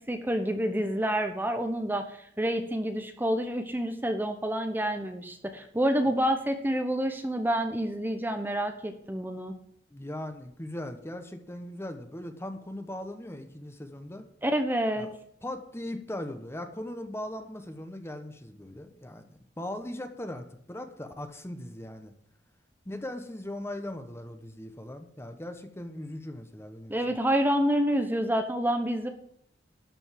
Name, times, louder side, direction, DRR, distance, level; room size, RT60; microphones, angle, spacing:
voice 1, 0.1-9.5 14.4-15.1 26.9-29.1, equal, 10° right, 6 dB, 0.9 m, -28 dB
voice 2, 9.9-14.3 15.0-15.1 15.4-19.2 19.6-22.1 22.8-27.0, left 1 dB, 15° left, 7 dB, 1.1 m, -39 dB
12.5 x 5.3 x 7.5 m, 0.68 s
head